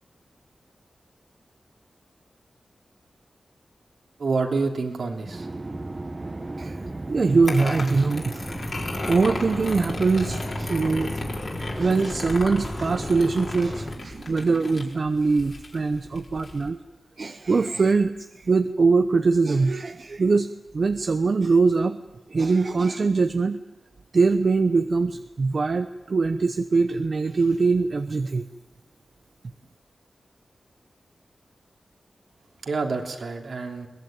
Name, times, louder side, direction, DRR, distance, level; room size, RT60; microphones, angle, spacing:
voice 1, 4.2-5.5 32.6-33.9, right 4 dB, 75° right, 2 dB, 3.2 m, -27 dB
sound 1, 5.2-14.2, right 2 dB, 30° right, 1.4 m, -36 dB
voice 2, 7.1-8.5 9.1-11.2 11.6-16.8 17.2-22.0 22.3-23.6 24.1-28.4, right 4 dB, 55° right, 8 dB, 0.9 m, -22 dB
sound 2, 7.5-16.7, left 3 dB, 55° left, 4.6 m, -36 dB
sound 3, 8.4-14.0, left 1 dB, 25° left, 1.9 m, -35 dB
22.5 x 19.5 x 9.1 m, 1.0 s
wide cardioid pair, 95°, 0 cm